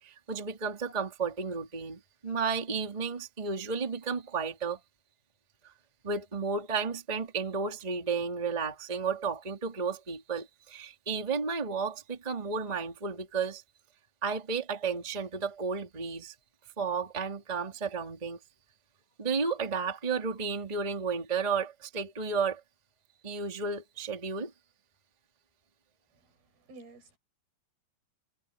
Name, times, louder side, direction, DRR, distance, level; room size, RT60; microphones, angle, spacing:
voice 1, 0.0-4.8 6.0-13.6 14.2-16.3 16.8-18.4 19.2-22.6 23.2-24.5, right 5 dB, 10° right, 2.3 m, -32 dB
voice 2, 26.1-27.2, right 2 dB, 70° right, 7.4 m, -53 dB
omnidirectional pair, 4.6 m